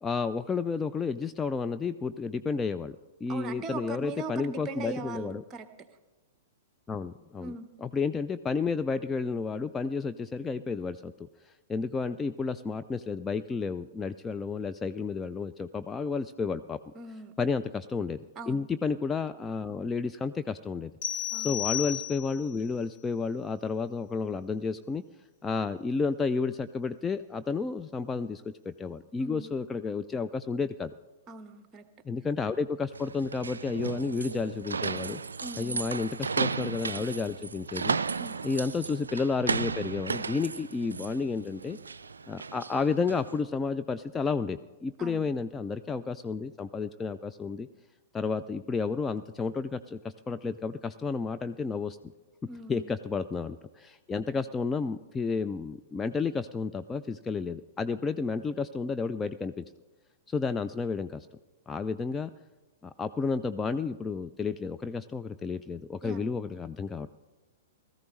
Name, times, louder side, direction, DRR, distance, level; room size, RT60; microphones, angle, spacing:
voice 1, 0.0-5.4 6.9-7.5 7.8-11.3 11.7-16.8 17.4-20.9 21.4-25.0 25.4-30.9 32.0-35.2 35.6-38.0 38.4-41.8 42.3-47.7 48.1-52.0 52.7-59.7 60.3-61.3 61.7-62.3 62.8-67.1, left 4 dB, 15° left, 10 dB, 0.3 m, -31 dB
voice 2, 3.3-5.7 7.4-7.7 16.9-17.3 18.4-18.7 21.3-21.6 29.2-29.5 31.3-31.8 35.4-35.8 38.2-38.4 45.0-45.3 52.5-52.9 66.0-66.3, right 3 dB, 25° right, 9 dB, 1.0 m, -40 dB
sound 1, 21.0-22.5, left 12 dB, 55° left, 1.9 m, -33 dB
sound 2, 32.9-43.4, right 5 dB, 80° right, 0.3 m, -34 dB
17.0 x 14.0 x 3.1 m, 1.2 s
figure-of-eight pair, 105°, 0 cm